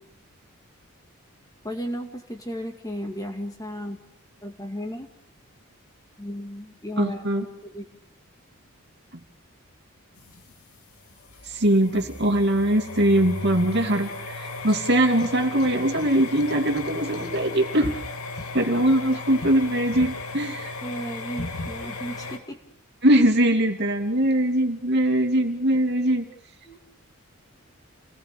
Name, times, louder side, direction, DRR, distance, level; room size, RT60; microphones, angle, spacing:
voice 1, 1.6-4.0 4.4-5.1 6.2-7.8 20.8-22.6 26.7-26.8, equal, 15° left, 4 dB, 2.3 m, -34 dB
voice 2, 7.0-7.4 11.5-18.0 18.5-20.7 23.0-26.2, right 1 dB, 50° right, 4 dB, 2.7 m, -22 dB
sound 1, 10.2-22.4, left 3 dB, 80° left, 2.7 m, -35 dB
29.0 x 19.0 x 6.8 m, 0.64 s
head